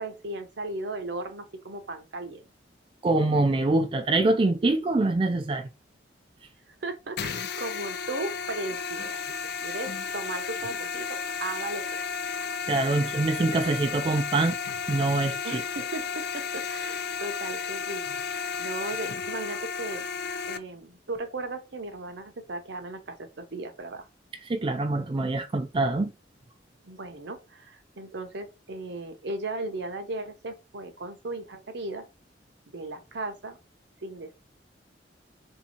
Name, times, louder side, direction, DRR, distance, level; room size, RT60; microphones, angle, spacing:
voice 1, 0.0-2.5 6.7-9.2 9.6-12.0 13.0-13.1 15.4-18.0 18.3-20.1 20.5-24.1 26.8-32.1 32.7-33.6 34.0-34.4, right 2 dB, 65° right, 0.8 m, -36 dB
voice 2, 3.0-5.7 12.7-14.6 14.9-15.6 24.5-26.1, right 2 dB, 30° right, 0.4 m, -24 dB
sound 1, 7.2-20.6, left 6 dB, 60° left, 0.4 m, -33 dB
3.5 x 2.8 x 4.3 m
head